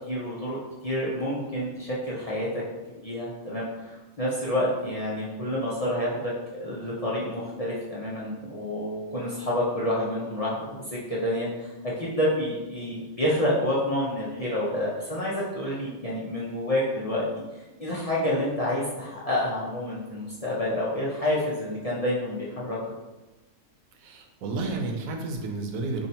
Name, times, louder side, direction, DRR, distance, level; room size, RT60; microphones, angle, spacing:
voice 1, 0.1-2.6 2.9-17.2 17.8-22.8, left 1 dB, 50° left, -7 dB, 0.4 m, -28 dB
voice 2, 24.0-26.1, right 3 dB, 85° right, 3 dB, 1.0 m, -31 dB
2.7 x 2.7 x 4.2 m, 1.1 s
omnidirectional pair, 1.4 m